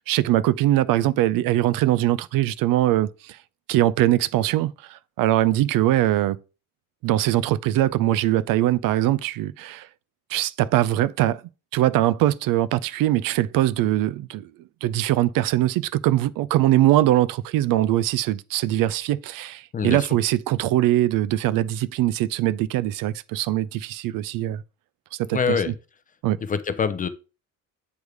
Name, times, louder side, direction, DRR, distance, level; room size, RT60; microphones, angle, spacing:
voice 1, 0.1-3.4 3.7-6.4 7.0-9.9 10.3-11.4 11.7-14.5 14.8-24.6 25.1-25.6 26.2-26.4, right 14 dB, 75° right, 0.5 m, -22 dB
voice 2, 19.7-20.1 25.3-25.7 26.4-27.1, left 6 dB, 25° left, 0.5 m, -25 dB
8.0 x 3.4 x 4.8 m
cardioid pair, 170°, 34 cm